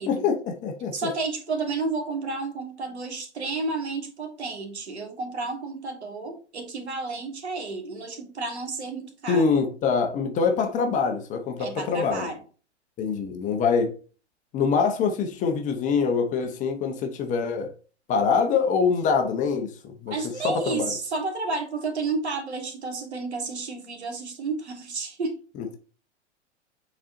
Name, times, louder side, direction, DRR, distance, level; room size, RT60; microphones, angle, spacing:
voice 1, 0.1-1.1 9.3-12.3 13.0-13.9 14.5-17.7 18.1-19.7 20.0-20.1 20.4-20.9, left 5 dB, 20° left, 0.9 m, -24 dB
voice 2, 0.9-9.5 11.6-12.4 20.1-25.4, right 3 dB, 65° right, 1.8 m, -31 dB
8.7 x 4.2 x 2.7 m
figure-of-eight pair, 100°, 35 cm